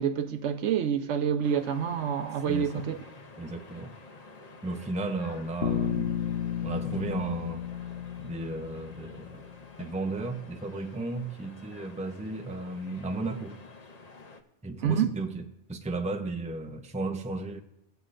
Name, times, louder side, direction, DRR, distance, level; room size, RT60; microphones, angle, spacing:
voice 1, 0.0-2.9 14.8-15.1, right 8 dB, 90° right, 1.1 m, -27 dB
sound 1, 1.4-14.4, left 3 dB, 40° left, 0.7 m, -50 dB
voice 2, 2.5-2.9 3.4-3.9 4.6-6.1 6.6-7.6 8.2-9.5 9.8-13.6 14.6-15.4 15.7-17.6, right 2 dB, 10° right, 0.5 m, -34 dB
Bass guitar, 5.6-9.6, left 9 dB, 75° left, 0.9 m, -33 dB
20.5 x 8.0 x 2.5 m
omnidirectional pair, 1.2 m